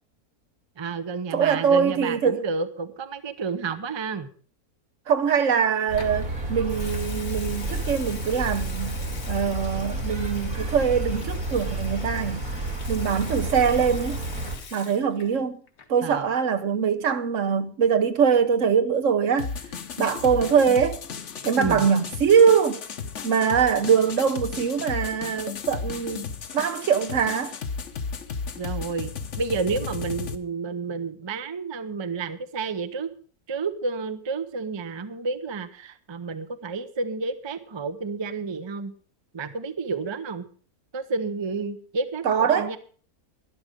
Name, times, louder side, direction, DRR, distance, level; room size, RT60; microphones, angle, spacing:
voice 1, 0.8-4.3 16.0-16.3 21.6-21.9 28.5-29.1 29.4-33.1 33.5-38.9 39.3-40.4 40.9-42.8, right 4 dB, 25° right, 0.6 m, -30 dB
voice 2, 1.3-2.4 5.1-8.9 9.3-12.4 12.9-14.2 14.7-15.6 15.9-19.5 20.0-21.0 21.4-22.8 23.2-27.5 42.2-42.7, right 7 dB, 60° right, 1.1 m, -22 dB
sound 1, 5.9-14.6, right 2 dB, 75° right, 3.6 m, -31 dB
Water tap faucet / Sink (filling or washing) / Liquid, 6.0-6.2 6.6-15.4 15.7-16.0, left 6 dB, 75° left, 1.9 m, -44 dB
sound 2, 19.4-30.4, left 5 dB, 55° left, 1.2 m, -34 dB
12.0 x 11.5 x 5.1 m
omnidirectional pair, 1.6 m